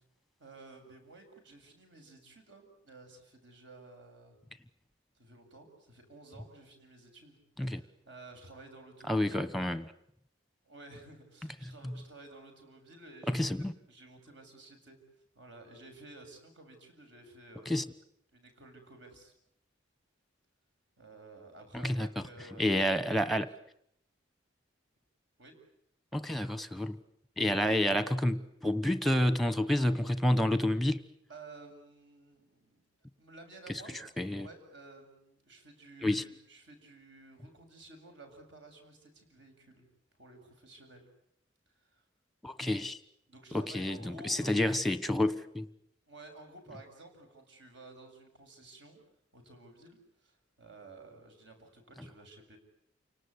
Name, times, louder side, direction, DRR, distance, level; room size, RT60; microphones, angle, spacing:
voice 1, 0.4-4.4 5.1-9.4 10.6-15.0 15.3-17.8 18.3-19.3 21.0-23.4 25.4-25.6 31.3-32.9 33.2-34.0 34.4-39.8 40.2-41.1 41.7-42.0 43.3-44.8 46.1-49.0 49.3-52.6, right 2 dB, 65° right, 5 dB, 7.4 m, -53 dB
voice 2, 9.1-9.9 11.8-11.9 13.3-13.7 17.7-17.8 21.7-22.1 22.6-23.5 26.1-27.0 27.4-31.0 34.2-34.5 36.0-36.2 42.4-43.0 43.5-45.7, left 1 dB, ahead, 12 dB, 1.1 m, -29 dB
29.5 x 19.0 x 9.7 m, 0.74 s
head